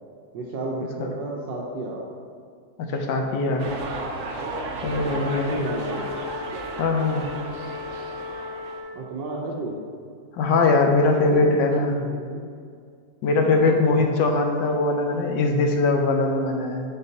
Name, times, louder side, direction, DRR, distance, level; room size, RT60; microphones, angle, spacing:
voice 1, 0.3-2.0 4.8-6.2 8.9-9.8 11.1-11.7 12.0-12.4 13.3-13.8, right 2 dB, 75° right, -2 dB, 1.3 m, -33 dB
voice 2, 2.8-3.7 4.8-5.6 6.8-7.3 10.3-12.0 13.2-16.8, left 3 dB, 75° left, 3 dB, 1.3 m, -21 dB
sound 1, 3.6-8.8, right 3 dB, 60° right, 0.8 m, -34 dB
Wind instrument woodwind instrument, 4.8-9.2, left 4 dB, 45° right, 1.7 m, -36 dB
10.5 x 3.8 x 2.8 m, 2.3 s
omnidirectional pair, 2.0 m